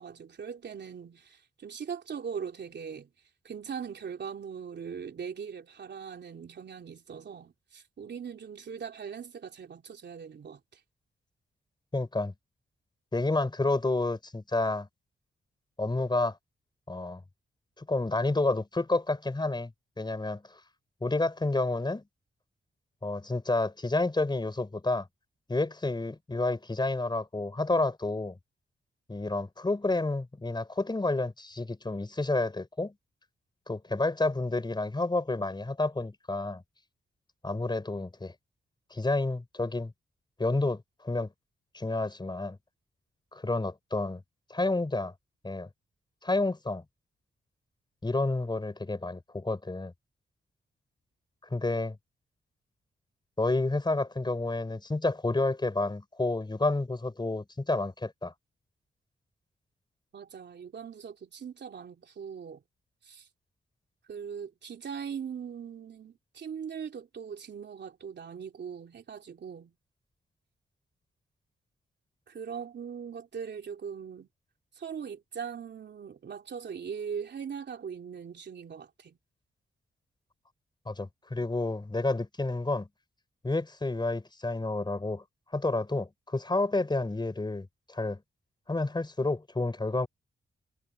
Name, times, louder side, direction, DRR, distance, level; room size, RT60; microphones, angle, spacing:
voice 1, 0.0-3.1 3.4-10.8 60.1-62.6 63.0-63.3 64.1-69.7 72.3-74.3 74.7-79.2, right 7 dB, 65° right, 3.3 m, -40 dB
voice 2, 11.9-12.3 13.1-14.9 15.8-16.4 16.9-17.2 17.8-19.7 20.0-20.6 21.0-22.0 23.0-25.1 25.5-28.3 29.1-32.9 33.7-36.6 37.4-38.3 38.9-39.9 40.4-41.3 41.7-42.6 43.3-44.2 44.5-45.1 45.4-45.7 46.2-46.8 48.0-49.9 51.5-52.0 53.4-58.3 80.8-82.9 83.4-85.2 85.5-88.2 88.7-90.1, left 2 dB, 25° left, 5.0 m, -30 dB
cardioid pair, 85°, 19 cm